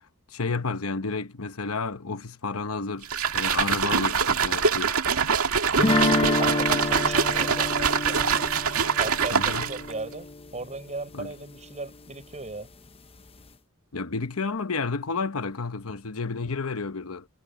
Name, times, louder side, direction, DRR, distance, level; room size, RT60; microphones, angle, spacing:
voice 1, 0.3-5.0 9.3-9.7 11.1-11.3 13.9-17.3, left 4 dB, 80° left, 1.0 m, -31 dB
sound 1, 3.0-9.9, right 6 dB, 85° right, 2.0 m, -24 dB
sound 2, 5.8-10.7, left 2 dB, 25° left, 0.8 m, -28 dB
voice 2, 6.4-8.5 9.0-12.7, right 3 dB, 35° right, 6.4 m, -36 dB
head